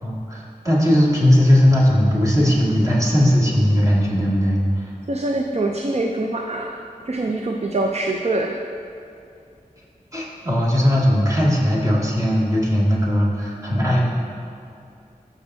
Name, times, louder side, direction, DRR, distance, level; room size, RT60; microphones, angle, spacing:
voice 1, 0.0-4.8 10.1-14.1, equal, 20° right, -6 dB, 2.1 m, -18 dB
voice 2, 5.1-6.7 7.1-8.6, right 2 dB, 45° right, 2 dB, 0.5 m, -24 dB
13.5 x 6.0 x 2.7 m, 2.6 s
wide cardioid pair, 40°, 15 cm